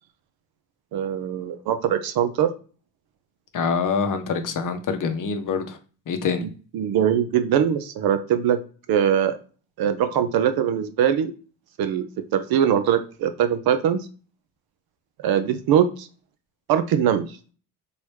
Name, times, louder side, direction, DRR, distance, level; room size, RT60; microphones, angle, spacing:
voice 1, 0.9-2.5 6.4-8.6 8.9-9.4 9.8-11.3 11.8-14.1 15.2-16.1 16.7-17.4, right 9 dB, 55° right, 10 dB, 0.5 m, -22 dB
voice 2, 3.5-5.8 6.1-6.4, left 5 dB, 45° left, 7 dB, 0.7 m, -25 dB
3.0 x 2.3 x 3.2 m, 0.38 s
hypercardioid pair, 50°, 43 cm